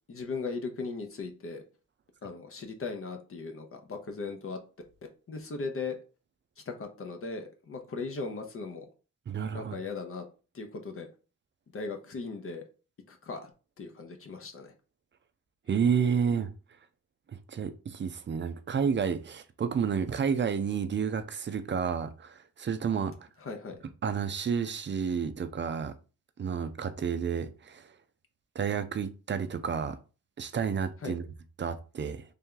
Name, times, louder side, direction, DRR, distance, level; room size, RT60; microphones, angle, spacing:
voice 1, 0.1-1.6 2.2-4.6 5.3-6.0 6.7-8.9 9.5-10.2 10.5-11.1 11.7-12.6 13.1-13.5 13.8-14.7 23.4-23.8 31.0-31.1, left 4 dB, 45° left, 0.7 m, -38 dB
voice 2, 9.3-9.7 15.7-16.5 17.3-23.1 24.0-25.9 26.4-27.9 28.6-30.0 30.4-31.3 31.6-32.2, right 6 dB, 40° right, 0.4 m, -30 dB
3.4 x 2.8 x 3.7 m
wide cardioid pair, 140°, 30 cm